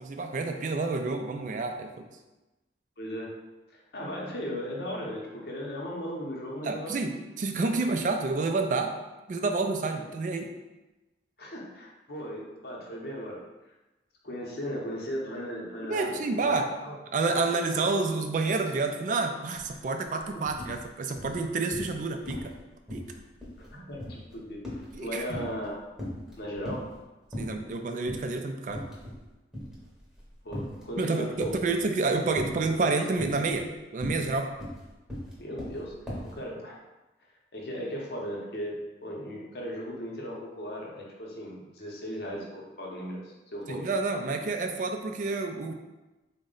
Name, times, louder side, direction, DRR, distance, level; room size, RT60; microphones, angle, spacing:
voice 1, 0.0-2.1 6.6-8.9 9.3-10.5 15.8-16.7 17.1-22.5 22.9-23.1 24.9-25.4 27.4-28.9 31.0-34.5 43.7-45.7, right 3 dB, 45° right, 5 dB, 0.3 m, -29 dB
voice 2, 3.0-3.4 3.7-7.0 11.4-13.4 14.2-16.9 20.3-20.5 23.6-25.8 26.4-26.9 30.4-31.6 35.4-36.8 37.5-43.8, equal, 55° left, -2 dB, 0.7 m, -37 dB
sound 1, 19.6-19.8 20.1-20.8 21.2-22.0 22.3-22.6 22.9-25.7 26.0-26.9 27.3-27.7 28.1-28.3 28.7-29.2 29.5-30.9 31.4-31.8 32.4-32.8 33.1-36.4, left 1 dB, 5° right, 0.8 m, -38 dB
4.0 x 2.1 x 3.7 m, 1.1 s
head